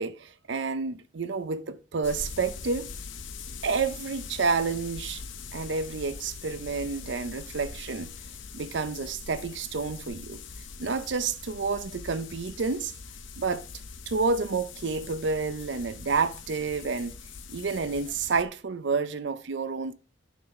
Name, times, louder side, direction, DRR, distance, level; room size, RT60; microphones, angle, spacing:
voice 1, 0.0-2.9 3.6-5.2 5.5-8.1 8.5-10.4 10.8-12.9 13.4-13.7 14.1-17.1 17.5-19.9, right 4 dB, 60° right, 0.5 m, -29 dB
sound 1, 2.0-18.4, left 5 dB, 70° left, 0.8 m, -42 dB
9.1 x 6.4 x 3.6 m
head